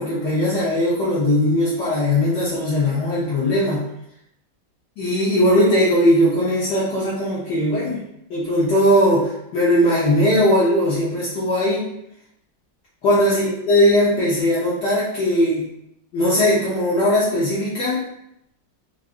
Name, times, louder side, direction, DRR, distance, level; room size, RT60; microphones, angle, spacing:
voice 1, 0.0-3.8 5.0-8.0 8.3-11.8 13.0-15.6 16.1-18.0, left 1 dB, 65° left, -9 dB, 1.5 m, -19 dB
4.9 x 2.6 x 2.5 m, 0.78 s
omnidirectional pair, 2.0 m